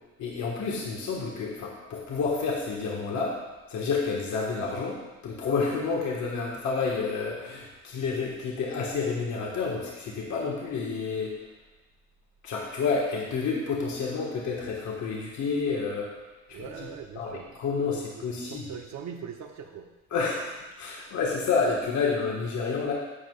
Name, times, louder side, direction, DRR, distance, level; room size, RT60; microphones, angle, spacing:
voice 1, 0.2-3.4 3.7-5.0 5.2-11.3 12.4-16.1 16.5-16.9 17.1-18.6 20.1-22.9, left 4 dB, 70° left, -3 dB, 1.6 m, -29 dB
voice 2, 16.5-17.5 17.8-19.9, right 7 dB, 65° right, 4 dB, 1.0 m, -41 dB
12.0 x 7.5 x 2.4 m, 1.1 s
cardioid pair, 90°, 30 cm